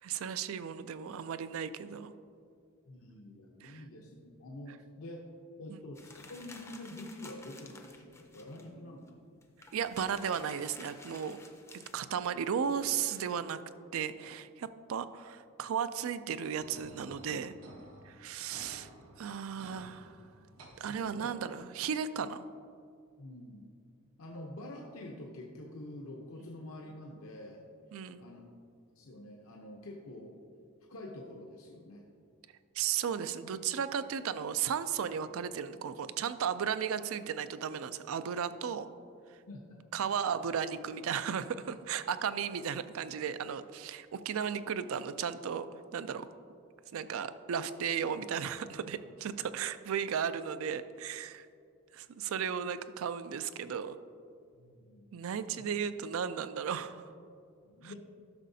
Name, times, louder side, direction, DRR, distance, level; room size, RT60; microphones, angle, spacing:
voice 1, 0.0-2.1 3.6-3.8 5.7-5.8 9.7-11.4 11.7-13.6 13.9-17.5 18.0-18.9 19.2-20.2 20.8-22.4 27.9-28.2 32.7-38.9 39.9-45.7 45.9-46.3 46.9-51.5 51.9-54.0 55.1-57.0 57.8-57.9, right 7 dB, 65° right, 13 dB, 0.3 m, -35 dB
voice 2, 2.9-5.2 5.6-9.2 21.0-21.3 23.2-23.7 24.2-27.6 28.2-28.4 29.0-30.3 30.9-32.0 39.5-39.8 54.5-55.0 57.6-57.9, left 1 dB, 65° left, 0 dB, 0.7 m, -47 dB
sound 1, 6.0-8.7 9.1-9.2 9.4-13.4, left 2 dB, 10° left, 0.5 m, -53 dB
sound 2, 16.6-21.6, right 1 dB, 80° right, 1.1 m, -54 dB
11.5 x 6.3 x 2.7 m, 2.4 s
head